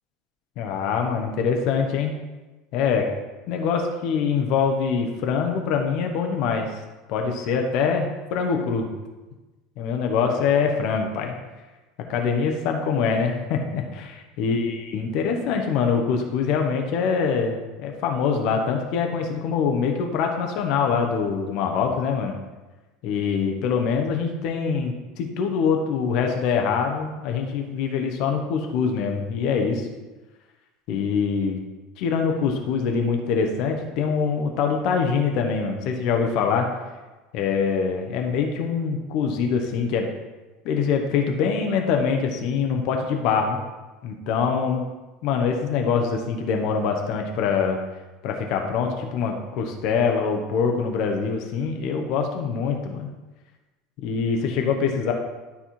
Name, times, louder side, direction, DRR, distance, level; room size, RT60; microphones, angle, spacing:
voice 1, 0.6-2.1 2.7-3.1 3.5-6.7 7.1-8.9 9.8-11.4 12.1-22.4 23.0-29.9 30.9-31.6 32.0-36.7 37.3-40.1 40.6-43.6 44.0-44.8 45.2-47.8 48.2-53.1 54.0-55.1, left 6 dB, 50° left, 3 dB, 1.1 m, -24 dB
12.0 x 4.3 x 4.4 m, 1.2 s
figure-of-eight pair, 70°, 0 cm